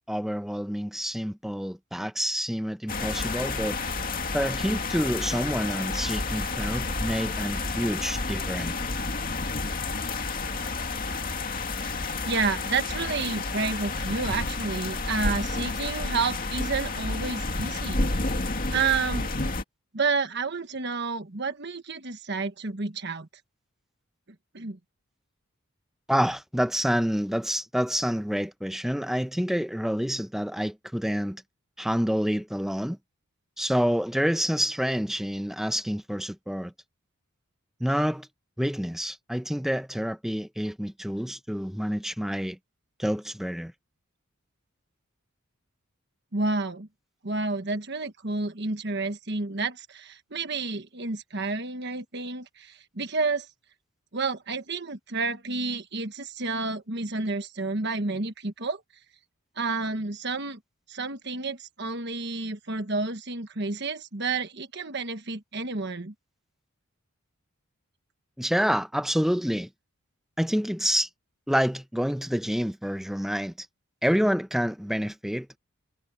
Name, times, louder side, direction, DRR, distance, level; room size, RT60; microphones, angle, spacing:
voice 1, 0.1-3.8 4.3-8.7 26.1-31.4 31.8-33.0 33.6-36.7 37.8-38.3 38.6-42.6 43.0-43.7 68.4-69.7 70.4-71.1 71.5-73.7 74.0-75.6, equal, ahead, 0.7 m, -28 dB
sound 1, 2.9-19.6, left 3 dB, 40° left, 2.4 m, -30 dB
voice 2, 12.2-18.4 18.7-19.3 19.9-23.3 24.5-24.8 46.3-46.9 47.2-53.5 54.1-58.8 59.6-60.6 60.9-66.1, right 4 dB, 50° right, 1.3 m, -30 dB
head